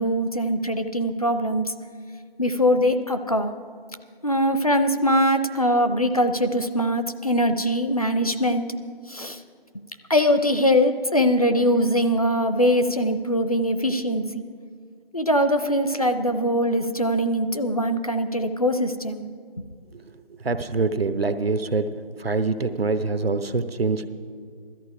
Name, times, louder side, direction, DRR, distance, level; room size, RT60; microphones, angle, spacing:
voice 1, 0.0-1.7 2.4-3.5 4.2-8.7 9.1-9.4 10.1-14.4 15.1-19.2 19.6-19.7, equal, 40° left, 8 dB, 0.5 m, -22 dB
voice 2, 20.4-21.9 22.2-24.1, right 3 dB, 80° right, 10 dB, 0.9 m, -24 dB
16.0 x 13.5 x 4.9 m, 2.1 s
figure-of-eight pair, 170°, 30 cm